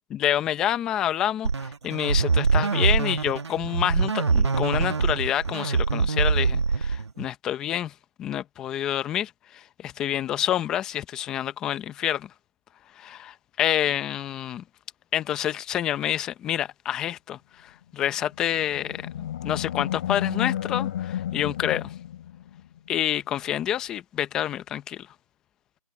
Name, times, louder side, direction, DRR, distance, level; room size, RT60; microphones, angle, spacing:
voice 1, 0.1-7.9 8.2-12.3 13.0-14.6 15.1-21.9 22.9-25.1, left 11 dB, 5° left, 0.8 m, -28 dB
sound 1, 1.4-7.3, right 4 dB, 45° right, 2.1 m, -24 dB
Animal, 18.3-22.8, left 11 dB, 20° left, 5.3 m, -31 dB
figure-of-eight pair, 165°, 19 cm